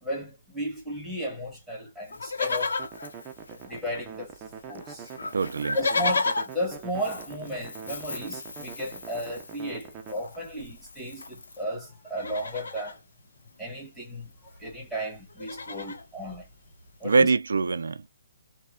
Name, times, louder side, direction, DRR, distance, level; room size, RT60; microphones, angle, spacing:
voice 1, 0.0-2.8 3.5-4.3 4.7-5.1 5.7-13.0 13.6-14.3 14.6-16.5 17.0-17.3, equal, ahead, 1.1 m, -34 dB
Livestock farm animals working animals, 2.1-4.1 4.4-4.5 4.7-11.6 12.1-13.0 14.2-14.3 14.5-14.7 15.1-16.1 16.7-16.8, left 3 dB, 85° left, 0.8 m, -34 dB
sound 1, 2.8-10.1, right 7 dB, 20° right, 0.5 m, -44 dB
voice 2, 5.3-5.8 17.0-18.1, right 4 dB, 85° right, 0.3 m, -23 dB
3.0 x 2.1 x 2.3 m
hypercardioid pair, 160°, 0 cm